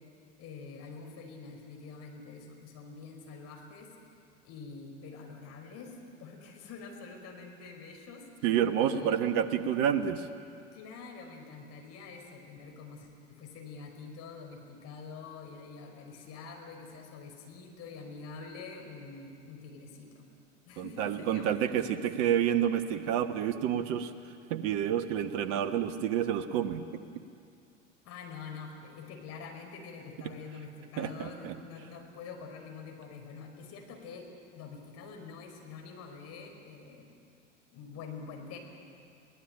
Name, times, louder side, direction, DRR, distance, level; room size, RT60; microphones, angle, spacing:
voice 1, 0.4-3.9 4.4-8.5 8.8-9.2 10.7-20.3 20.6-22.1 28.0-37.1 37.7-38.6, left 4 dB, 45° left, 3 dB, 5.1 m, -46 dB
voice 2, 8.4-10.3 20.8-24.1 24.5-26.8 31.0-31.5, right 9 dB, 50° right, 9 dB, 1.4 m, -29 dB
23.0 x 18.0 x 9.0 m, 2.4 s
figure-of-eight pair, 80°, 37 cm